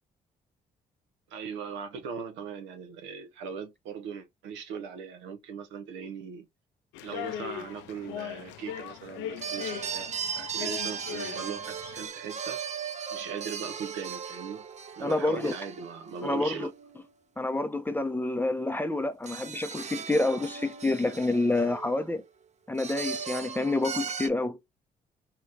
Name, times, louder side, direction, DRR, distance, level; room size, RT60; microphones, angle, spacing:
voice 1, 1.3-6.5 7.0-12.6 13.1-14.6 15.0-16.7, right 6 dB, 80° right, 0.6 m, -39 dB
sound 1, 6.9-12.1, left 10 dB, 85° left, 0.4 m, -39 dB
sound 2, 9.4-17.0 19.2-22.3 22.8-24.3, right 7 dB, 40° right, 0.6 m, -37 dB
voice 2, 15.0-15.5 16.2-16.7 17.4-22.2 22.7-24.6, left 2 dB, 10° left, 0.5 m, -28 dB
3.2 x 2.8 x 2.4 m
supercardioid pair, 55°, 19 cm